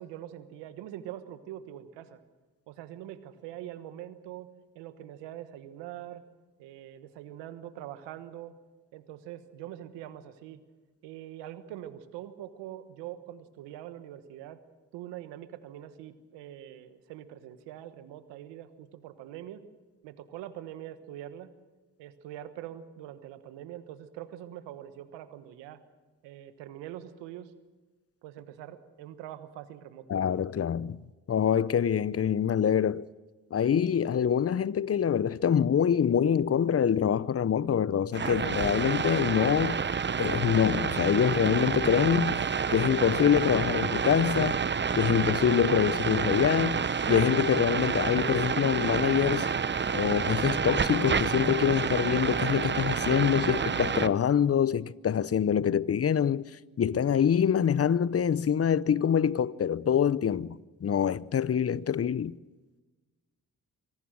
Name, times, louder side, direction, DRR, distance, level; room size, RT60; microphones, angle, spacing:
voice 1, 0.0-2.2 2.7-4.5 4.7-6.2 6.6-8.5 8.9-10.6 11.0-14.6 14.9-19.6 20.0-21.5 22.0-25.8 26.2-27.5 28.2-30.1, right 12 dB, 85° right, 1.3 m, -43 dB
voice 2, 30.1-31.0 31.3-33.1 33.5-39.8 40.2-44.6 44.9-49.5 49.9-56.4 56.8-62.3, left 8 dB, 35° left, 0.7 m, -25 dB
sound 1, 38.1-54.1, right 6 dB, 25° right, 0.8 m, -29 dB
25.0 x 18.0 x 6.3 m
supercardioid pair, 50°, 41 cm